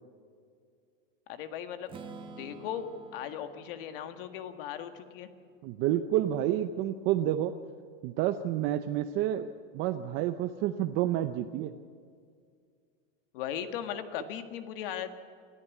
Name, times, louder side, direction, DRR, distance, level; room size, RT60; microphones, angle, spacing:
voice 1, 1.3-1.9 2.4-5.3 13.3-15.2, left 9 dB, 60° left, 8 dB, 1.8 m, -38 dB
Strum, 1.9-5.8, right 4 dB, 15° right, 1.3 m, -50 dB
voice 2, 5.6-7.5 8.0-9.5 9.7-11.7, right 12 dB, 35° right, 8 dB, 0.7 m, -29 dB
24.0 x 14.0 x 8.3 m, 2.2 s
supercardioid pair, 165°, 31 cm